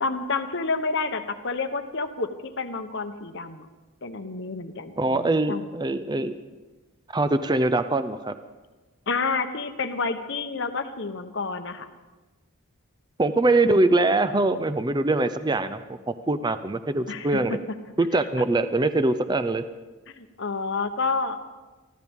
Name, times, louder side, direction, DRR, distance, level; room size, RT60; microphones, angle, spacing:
voice 1, 0.0-3.7 4.0-5.7 9.1-11.9 17.1-17.3 20.1-21.4, left 4 dB, 55° left, 8 dB, 1.0 m, -29 dB
voice 2, 5.0-6.3 7.1-8.4 13.2-15.8 16.1-17.6 18.0-19.6, right 2 dB, 20° right, 11 dB, 0.5 m, -23 dB
24.0 x 15.0 x 3.6 m, 1.2 s
head